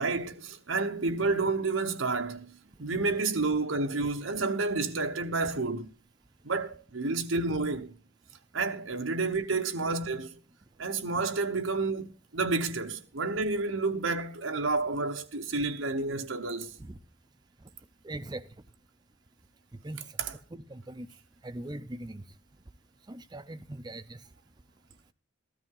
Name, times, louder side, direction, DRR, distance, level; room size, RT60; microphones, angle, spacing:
voice 1, 0.0-2.5 2.8-5.9 6.4-7.9 8.5-10.4 10.8-16.8 20.2-20.3, right 3 dB, 90° right, 1.0 m, -30 dB
voice 2, 18.0-18.4 19.8-20.0 20.5-21.1 21.4-22.2 23.1-24.2, right 1 dB, 20° right, 0.5 m, -40 dB
14.0 x 13.0 x 3.8 m
head